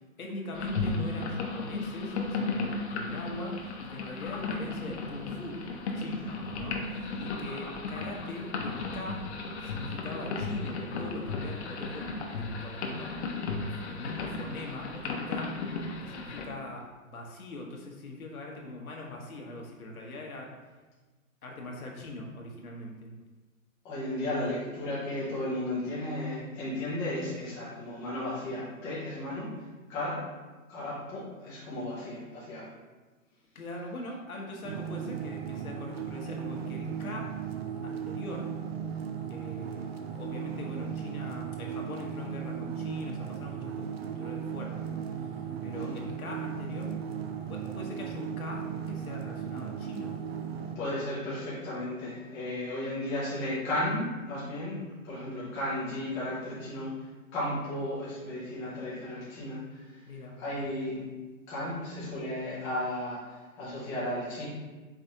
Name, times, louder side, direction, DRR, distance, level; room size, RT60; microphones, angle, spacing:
voice 1, 0.2-5.6 5.9-9.2 9.6-13.1 13.9-15.5 16.0-20.5 21.4-23.1 33.5-37.3 37.8-38.5 39.3-46.9 47.5-50.1 60.0-60.4, left 2 dB, 80° left, 0 dB, 1.1 m, -41 dB
sound 1, 0.5-16.4, left 3 dB, 50° left, 0.8 m, -35 dB
voice 2, 23.8-29.5 29.9-30.2 30.7-32.7 45.7-46.0 50.8-56.9 57.3-60.0 60.4-61.0 61.5-64.5, left 1 dB, 5° left, -9 dB, 0.4 m, -34 dB
sound 2, 34.6-50.8, right 8 dB, 50° right, 0.5 m, -36 dB
4.8 x 3.3 x 2.8 m, 1.2 s
hypercardioid pair, 130°, 42 cm